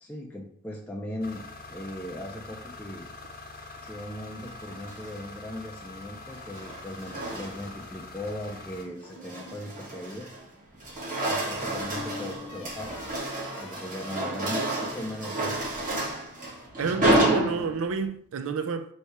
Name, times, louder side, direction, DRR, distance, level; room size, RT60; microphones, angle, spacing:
voice 1, 0.0-3.1 3.8-10.3 11.3-13.0 13.6-15.6, left 1 dB, 10° left, 0.4 m, -38 dB
sound 1, 1.2-8.9, left 3 dB, 45° left, 0.7 m, -44 dB
sound 2, 4.7-5.2 6.3-7.8 8.3-8.6 9.0-10.5 10.7-18.1, right 1 dB, 40° right, 1.2 m, -30 dB
sound 3, 8.9-9.7 11.6-15.2, left 3 dB, 80° left, 0.9 m, -44 dB
voice 2, 16.8-18.9, right 5 dB, 65° right, 0.4 m, -29 dB
3.3 x 2.7 x 4.4 m
head